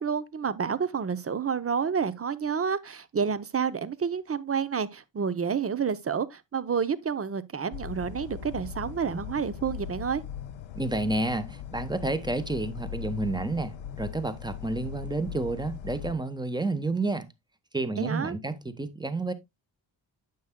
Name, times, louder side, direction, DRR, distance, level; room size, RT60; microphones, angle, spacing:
voice 1, 0.0-10.2 18.0-18.4, right 6 dB, 30° right, 0.7 m, -29 dB
sound 1, 7.7-16.1, left 9 dB, 80° left, 0.6 m, -39 dB
voice 2, 10.8-17.3 17.7-19.3, right 2 dB, 10° right, 1.0 m, -30 dB
9.4 x 6.3 x 2.2 m
cardioid pair, 65°, 46 cm